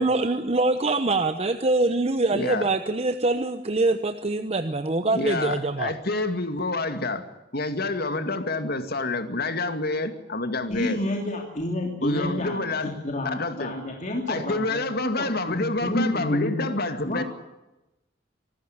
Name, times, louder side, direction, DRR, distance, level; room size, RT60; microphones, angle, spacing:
voice 1, 0.0-5.9, right 2 dB, 35° right, 0.9 m, -24 dB
voice 2, 2.3-2.7 5.1-7.2 7.5-11.0 12.0-13.0 13.3-13.7 14.3-17.2, left 2 dB, 55° left, 2.3 m, -28 dB
voice 3, 10.7-16.7 17.1-17.2, left 1 dB, 40° left, 3.0 m, -29 dB
25.0 x 14.0 x 9.7 m
head